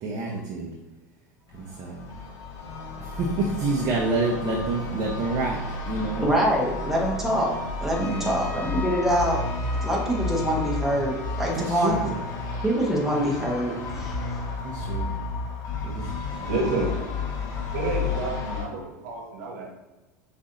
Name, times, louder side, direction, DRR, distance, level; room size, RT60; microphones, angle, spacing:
voice 1, 0.0-0.7 1.5-2.1 3.0-5.6 5.9-6.3 8.0-8.5 11.5-12.2 14.6-15.1 15.8-16.5 17.3-17.6, right 3 dB, 40° right, -2 dB, 0.7 m, -28 dB
sound 1, 1.5-18.6, left 4 dB, 45° left, 1.0 m, -32 dB
voice 2, 6.2-7.5 7.8-9.4 9.8-12.0 12.6-14.2, right 1 dB, 5° right, -2 dB, 1.0 m, -25 dB
Trumpet, 7.9-12.8, left 1 dB, 15° left, 0.8 m, -41 dB
voice 3, 16.5-16.9 17.7-19.7, right 3 dB, 65° right, -1 dB, 1.2 m, -29 dB
6.1 x 2.7 x 2.6 m, 1.1 s
hypercardioid pair, 85°, 9 cm